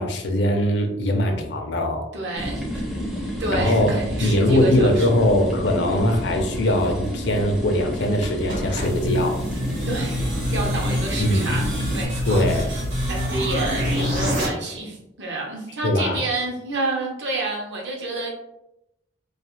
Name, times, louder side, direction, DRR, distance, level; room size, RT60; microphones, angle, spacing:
voice 1, 0.0-2.0 3.5-3.9 4.2-9.4 11.2-11.5 12.3-12.7 15.8-16.2, left 1 dB, 65° left, 4 dB, 0.5 m, -21 dB
voice 2, 2.1-5.1 9.9-12.8 13.1-18.3, right 2 dB, 65° right, 0 dB, 0.7 m, -29 dB
sound 1, 2.4-12.1, equal, ahead, 0.4 m, -30 dB
sound 2, 8.2-14.5, equal, 90° right, 1.0 m, -26 dB
2.3 x 2.3 x 2.9 m, 0.85 s
head